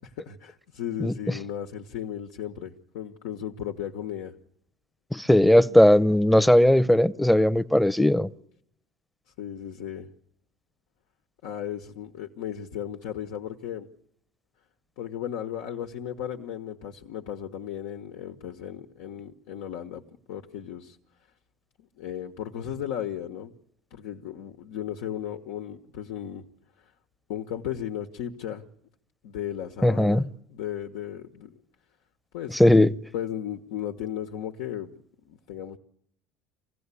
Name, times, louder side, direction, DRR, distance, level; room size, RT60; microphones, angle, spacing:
voice 1, 0.0-4.3 9.4-10.1 11.4-13.9 15.0-21.0 22.0-23.5 23.9-26.4 26.8-26.9 27.3-28.6 29.2-31.5 32.3-32.6 33.1-34.9 35.2-35.8, left 10 dB, 80° left, 1.3 m, -35 dB
voice 2, 5.1-8.3 29.8-30.2 32.5-32.9, left 1 dB, 5° left, 0.8 m, -18 dB
24.0 x 16.0 x 8.4 m
supercardioid pair, 90°, 0 cm